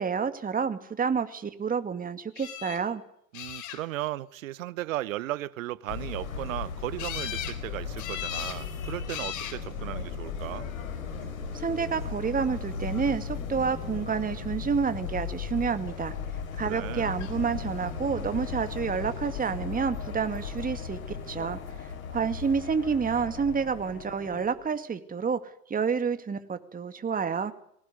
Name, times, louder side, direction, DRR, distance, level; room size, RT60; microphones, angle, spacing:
voice 1, 0.0-3.0 11.5-16.1 16.6-27.5, right 6 dB, 20° right, 2.2 m, -29 dB
sound 1, 2.3-2.8 3.3-4.1 7.0-7.6 8.0-8.6 9.1-9.6 10.5-11.0 17.2-17.3 17.6-17.7, left 11 dB, 45° left, 3.4 m, -37 dB
voice 2, 3.3-10.7 16.6-17.1, right 15 dB, 75° right, 1.0 m, -36 dB
sound 2, 5.9-24.7, left 5 dB, 80° left, 4.5 m, -37 dB
sound 3, 15.8-24.5, left 8 dB, 30° left, 2.2 m, -47 dB
21.5 x 18.0 x 9.6 m
hypercardioid pair, 85°, 40 cm